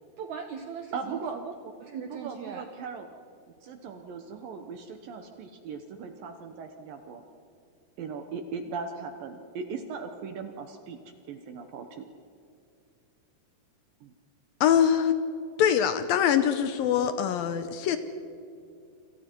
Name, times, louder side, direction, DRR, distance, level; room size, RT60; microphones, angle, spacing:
voice 1, 0.2-1.5 1.8-2.7, right 6 dB, 90° right, 6 dB, 1.6 m, -39 dB
voice 2, 0.9-1.4 2.1-3.1 3.6-7.2 8.0-12.1 14.0-14.1, right 5 dB, 70° right, 6 dB, 2.4 m, -38 dB
voice 3, 14.6-15.2 15.6-18.0, left 9 dB, 75° left, 10 dB, 2.2 m, -23 dB
28.5 x 27.0 x 4.6 m, 2.6 s
omnidirectional pair, 4.9 m